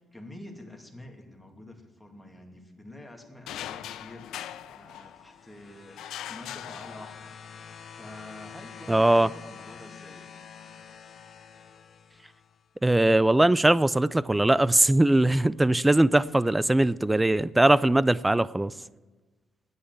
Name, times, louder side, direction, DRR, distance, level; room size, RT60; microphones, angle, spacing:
voice 1, 0.0-7.3 7.9-10.3, left 1 dB, 5° left, 2.2 m, -47 dB
sound 1, 3.5-5.4 6.0-7.5, left 11 dB, 80° left, 0.5 m, -40 dB
sound 2, 4.9-12.7 13.7-13.8, left 7 dB, 55° left, 0.7 m, -47 dB
voice 2, 8.9-9.3 12.8-18.7, right 1 dB, 10° right, 0.3 m, -21 dB
10.0 x 8.1 x 9.0 m
cardioid pair, 90°, 0 cm